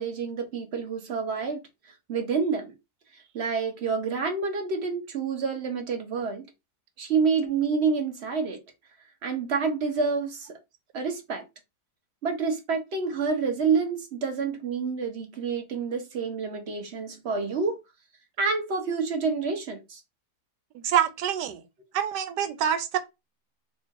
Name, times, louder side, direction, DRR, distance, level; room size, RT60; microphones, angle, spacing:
voice 1, 0.0-1.6 2.1-2.7 3.3-6.5 7.0-8.6 9.2-10.5 10.9-11.4 12.2-17.8 18.4-20.0, right 5 dB, 50° right, 0.9 m, -28 dB
voice 2, 20.8-21.6 21.9-23.0, right 9 dB, 85° right, 1.3 m, -26 dB
3.0 x 2.5 x 3.5 m
omnidirectional pair, 1.8 m